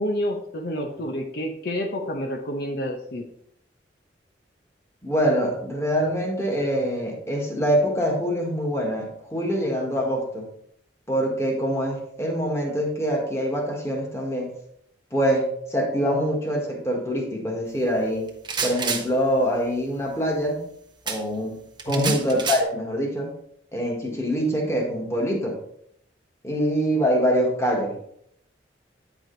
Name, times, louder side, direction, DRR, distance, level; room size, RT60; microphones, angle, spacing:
voice 1, 0.0-3.3 16.1-16.2 21.8-22.2, left 1 dB, 60° left, 3 dB, 0.8 m, -28 dB
voice 2, 5.0-10.5 11.1-14.5 15.1-18.3 18.6-20.6 21.0-21.6 21.8-23.3 23.7-25.6 26.4-28.0, equal, 15° left, 0 dB, 1.5 m, -24 dB
sound 1, 18.3-19.1 21.1-21.2 21.8-22.6, right 5 dB, 25° right, 0.9 m, -28 dB
9.0 x 5.0 x 3.9 m, 0.70 s
head